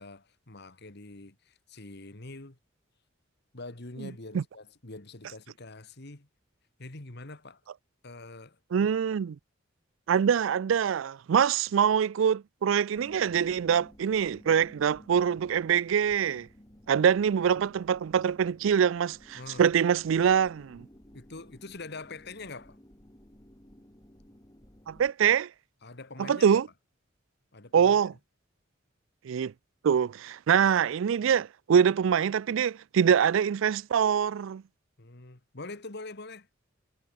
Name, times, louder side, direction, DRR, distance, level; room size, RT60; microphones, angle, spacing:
voice 1, 0.0-2.6 3.5-6.3 6.8-7.6 8.0-8.9 19.4-19.7 21.1-22.8 25.8-26.6 27.5-28.1 35.0-36.5, left 3 dB, 55° left, 1.9 m, -44 dB
voice 2, 8.7-9.4 10.1-16.5 16.9-20.9 24.9-25.5 26.2-26.7 27.7-28.1 29.2-29.5 29.8-34.6, right 7 dB, 70° right, 0.4 m, -24 dB
sound 1, 12.9-25.1, equal, 20° left, 2.6 m, -55 dB
head